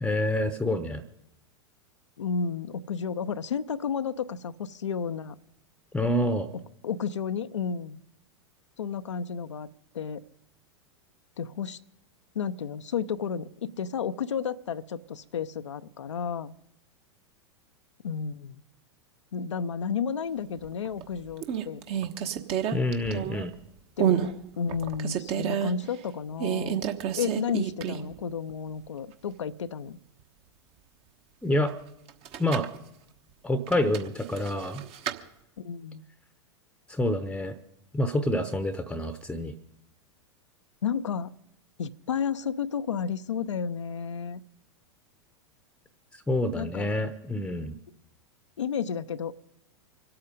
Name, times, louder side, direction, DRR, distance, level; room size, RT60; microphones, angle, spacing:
voice 1, 0.0-1.0 5.9-6.5 22.7-23.5 31.4-31.7 32.4-32.7 33.4-34.8 36.9-37.5 37.9-39.5 46.1-47.7, left 1 dB, 5° left, 11 dB, 0.9 m, -27 dB
voice 2, 2.2-5.4 6.8-8.0 8.8-9.7 9.9-10.2 11.4-11.8 12.3-16.5 18.0-18.6 19.3-21.8 24.0-26.8 27.2-30.0 35.6-36.0 40.8-41.3 41.8-44.4 46.5-46.9 48.6-49.3, left 7 dB, 75° left, 9 dB, 0.6 m, -32 dB
sound 1, 20.6-21.0 21.4-23.6 24.0-24.3 24.7-25.7 26.4-28.2 28.5-28.6 32.1-32.8 33.7-35.2, right 9 dB, 40° right, 1.2 m, -29 dB
25.5 x 8.7 x 5.2 m, 0.82 s
figure-of-eight pair, 90°, 15 cm